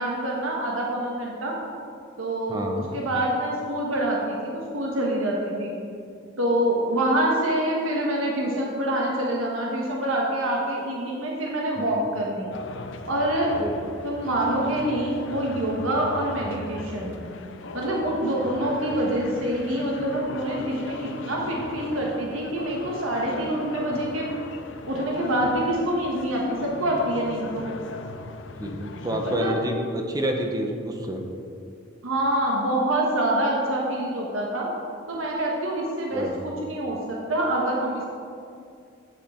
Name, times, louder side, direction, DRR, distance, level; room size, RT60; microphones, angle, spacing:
voice 1, 0.0-1.6 2.2-2.6 2.9-5.7 6.4-12.5 13.1-13.6 14.0-17.2 17.7-24.3 24.9-27.7 29.3-29.5 32.0-34.7 35.1-38.1, right 1 dB, 85° right, -2 dB, 1.3 m, -26 dB
voice 2, 2.5-2.9 11.8-12.0 13.6-13.9 18.4-18.5 28.6-31.2 36.1-36.5, equal, 20° right, 3 dB, 0.7 m, -29 dB
sound 1, 12.5-29.4, left 3 dB, 65° left, 0.5 m, -38 dB
8.9 x 8.2 x 4.3 m, 2.4 s
head